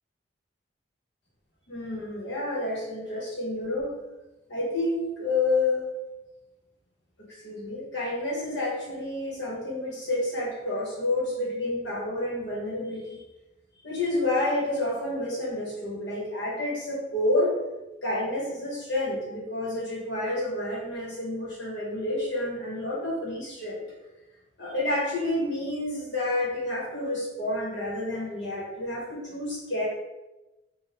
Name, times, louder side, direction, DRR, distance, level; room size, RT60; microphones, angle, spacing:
voice 1, 1.7-4.0 4.5-5.9 7.4-13.2 13.8-17.6 18.0-23.8 24.6-29.9, left 2 dB, 70° left, -5 dB, 1.3 m, -29 dB
3.7 x 2.5 x 3.6 m, 1.1 s
head